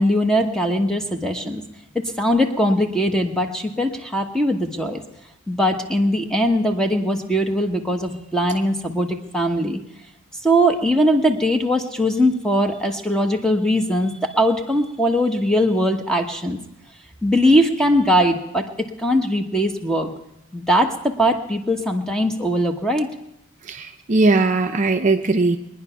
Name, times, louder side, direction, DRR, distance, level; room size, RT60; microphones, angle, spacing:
voice 1, 0.0-1.6 1.9-5.0 5.5-9.8 10.4-16.6 17.2-20.1 20.5-23.1, equal, 5° left, 4 dB, 1.0 m, -20 dB
voice 2, 23.6-25.6, right 3 dB, 35° right, 6 dB, 0.5 m, -19 dB
22.0 x 10.0 x 5.7 m, 0.83 s
head